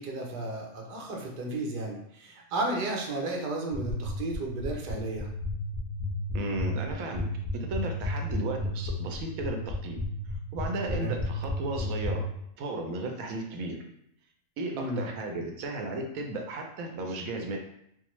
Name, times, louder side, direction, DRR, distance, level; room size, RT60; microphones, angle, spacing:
voice 1, 0.0-5.3 10.9-11.2 14.7-15.0, right 2 dB, 50° right, 1 dB, 0.6 m, -33 dB
sound 1, 3.7-12.1, left 2 dB, 25° left, 0.7 m, -32 dB
voice 2, 6.3-7.3 7.5-10.0 10.5-12.2 12.6-13.8 14.6-17.6, right 2 dB, 85° right, 2 dB, 1.1 m, -34 dB
4.5 x 2.1 x 3.0 m, 0.74 s
omnidirectional pair, 1.4 m